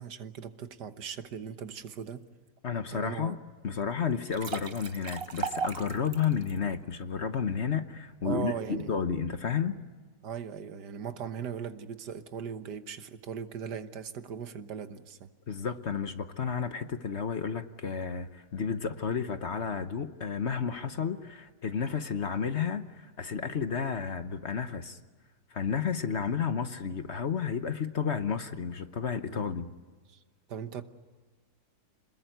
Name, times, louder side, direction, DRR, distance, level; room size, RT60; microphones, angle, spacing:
voice 1, 0.0-2.2 2.9-3.4 8.2-9.0 10.2-15.3 29.2-29.4 30.1-30.2 30.5-30.8, right 7 dB, 80° right, 10 dB, 1.8 m, -38 dB
voice 2, 2.6-3.4 3.6-9.8 15.5-25.0 25.5-29.7, left 6 dB, 45° left, 10 dB, 1.2 m, -32 dB
sound 1, 4.1-6.6, right 5 dB, 40° right, 1.1 m, -36 dB
27.5 x 21.0 x 9.2 m, 1.4 s
omnidirectional pair, 1.8 m